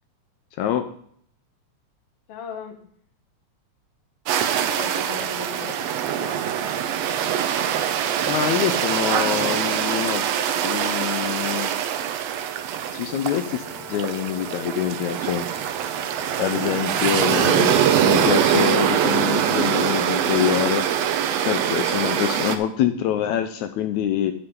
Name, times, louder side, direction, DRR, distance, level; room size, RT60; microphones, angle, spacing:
voice 1, 2.3-2.8 4.7-6.4, left 6 dB, 60° left, 5 dB, 2.0 m, -38 dB
sound 1, 4.3-22.6, right 9 dB, 70° right, 1.8 m, -23 dB
voice 2, 8.3-10.2 10.6-11.7 12.9-13.6 13.9-15.5 16.4-17.8 18.1-20.8 21.5-24.3, left 10 dB, 80° left, 7 dB, 2.0 m, -25 dB
Wind instrument woodwind instrument, 13.1-19.4, left 9 dB, 45° left, 2.6 m, -48 dB
10.5 x 9.2 x 3.7 m, 0.62 s
omnidirectional pair, 3.3 m